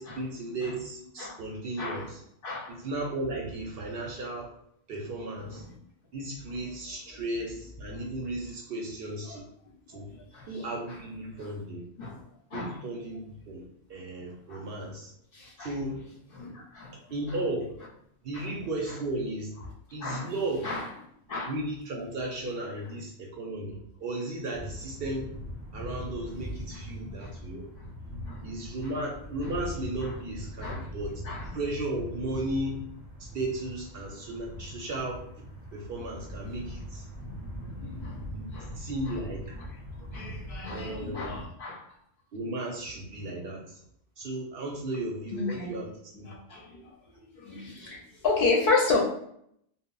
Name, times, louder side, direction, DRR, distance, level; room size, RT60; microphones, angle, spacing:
voice 1, 0.0-2.2 2.7-4.5 4.9-5.6 6.1-9.5 9.9-10.1 10.5-11.8 12.5-13.2 13.5-13.6 13.9-15.1 15.6-16.0 17.1-17.7 18.2-19.5 19.9-20.7 21.5-25.3 25.7-27.7 28.4-31.2 31.5-32.8 33.2-35.2 35.7-37.0 38.3-38.5 38.8-39.6 40.7-41.3 42.3-43.8 44.2-45.9 46.2-46.3, right 2 dB, 60° right, -1 dB, 0.7 m, -35 dB
voice 2, 1.7-2.1 2.4-2.8 5.5-5.6 7.1-7.2 9.3-9.4 10.1-10.7 11.4-11.5 12.0-12.2 12.5-12.8 14.5-14.7 15.3-15.7 16.3-16.9 18.3-18.5 20.0-20.3 20.6-20.9 21.3-21.5 26.7-26.8 27.2-27.3 28.1-28.9 29.4-29.5 30.0-30.1 30.6-30.9 31.2-31.5 37.8-38.2 38.5-38.7 39.1-39.2 39.6-39.7 40.0-41.9 45.3-45.7 46.3-49.0, left 3 dB, 60° left, -2 dB, 0.7 m, -32 dB
sound 1, 24.5-41.5, equal, 25° right, 0.5 m, -41 dB
2.0 x 2.0 x 3.7 m, 0.70 s
omnidirectional pair, 1.2 m